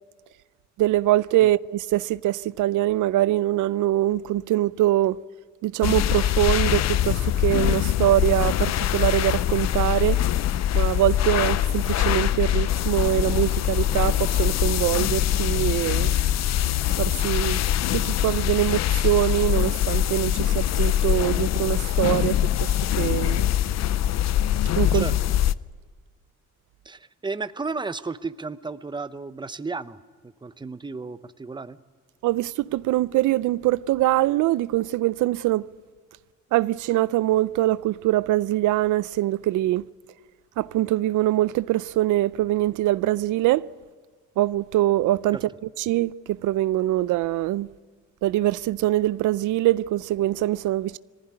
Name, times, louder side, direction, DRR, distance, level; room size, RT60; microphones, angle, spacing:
voice 1, 0.8-5.2 5.6-10.2 10.7-16.1 17.0-17.6 17.9-23.4 24.8-25.1 32.2-35.7 36.5-39.8 40.6-43.7 44.4-45.4 45.8-47.7 48.2-51.0, right 15 dB, 80° right, 0.5 m, -23 dB
sound 1, 5.8-25.5, left 12 dB, 60° left, 0.6 m, -23 dB
voice 2, 24.9-25.4 26.8-31.8, right 4 dB, 15° right, 0.8 m, -34 dB
20.5 x 15.5 x 9.8 m
cardioid pair, 90°, 30 cm